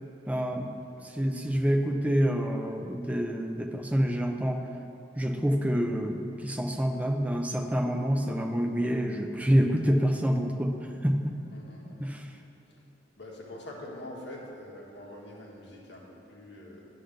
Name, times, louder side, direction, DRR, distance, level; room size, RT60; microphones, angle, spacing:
voice 1, 0.3-0.7 1.0-4.6 5.1-11.4 12.0-12.4, equal, 10° right, 3 dB, 0.4 m, -27 dB
voice 2, 1.0-1.5 11.5-12.1 12.7-12.8 13.2-16.8, left 1 dB, 70° left, -3 dB, 1.5 m, -45 dB
10.0 x 3.9 x 6.4 m, 2.8 s
head